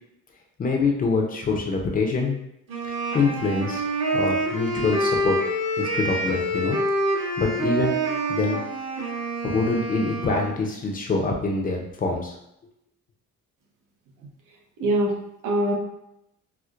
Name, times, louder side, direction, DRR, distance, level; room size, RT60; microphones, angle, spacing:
voice 1, 0.6-2.4 3.1-3.8 4.1-5.4 5.8-6.8 7.1-8.0 8.3-8.6 9.4-12.3, left 3 dB, 25° left, 1 dB, 0.5 m, -25 dB
Wind instrument woodwind instrument, 2.7-10.6, right 1 dB, 55° right, 1.1 m, -27 dB
voice 2, 14.8-15.7, right 1 dB, 80° right, 0 dB, 0.9 m, -23 dB
4.3 x 2.1 x 2.4 m, 0.82 s
cardioid pair, 145°, 31 cm